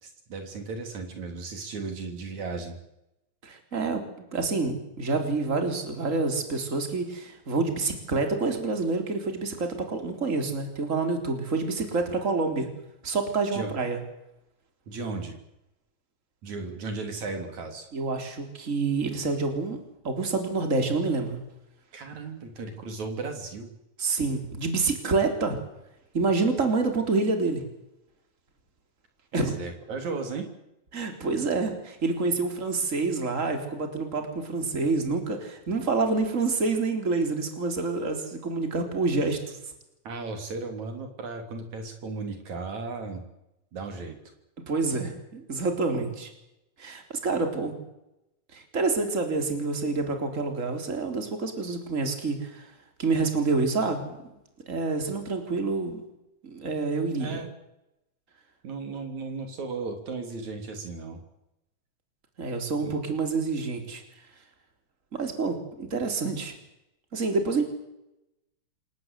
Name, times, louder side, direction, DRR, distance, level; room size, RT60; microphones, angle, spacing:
voice 1, 0.0-2.8 13.5-13.7 14.9-15.4 16.4-17.9 21.9-23.7 29.4-30.5 40.0-43.2 43.7-44.2 57.2-57.5 58.6-61.2 62.8-62.9, right 3 dB, 70° right, 5 dB, 4.4 m, -35 dB
voice 2, 3.4-12.7 13.0-14.0 17.9-21.4 24.0-25.6 26.1-27.6 29.3-29.6 30.9-39.6 44.7-46.3 46.8-47.8 48.5-52.7 53.0-54.2 54.7-56.0 56.4-57.4 62.4-64.0 65.1-66.5 67.1-67.7, right 3 dB, 25° right, 5 dB, 3.9 m, -27 dB
27.5 x 18.0 x 8.3 m, 0.88 s
omnidirectional pair, 3.4 m